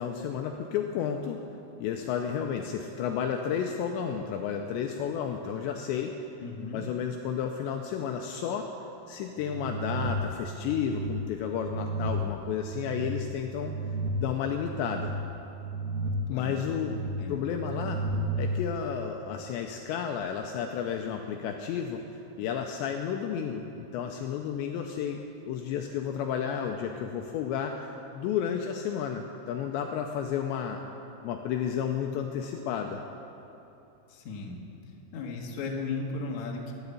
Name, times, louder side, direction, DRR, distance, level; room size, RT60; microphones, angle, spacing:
voice 1, 0.0-1.4 1.8-6.2 6.7-8.7 9.1-13.7 14.1-15.2 16.3-18.0 18.4-30.8 31.2-33.0, left 8 dB, 90° left, 3 dB, 2.5 m, -32 dB
voice 2, 6.4-6.8 16.3-16.6 17.2-17.4 34.1-34.6 35.1-36.7, left 3 dB, 70° left, -1 dB, 1.7 m, -35 dB
sound 1, 9.4-18.5, right 2 dB, 85° right, 1.7 m, -34 dB
12.0 x 11.0 x 8.3 m, 2.9 s
omnidirectional pair, 5.8 m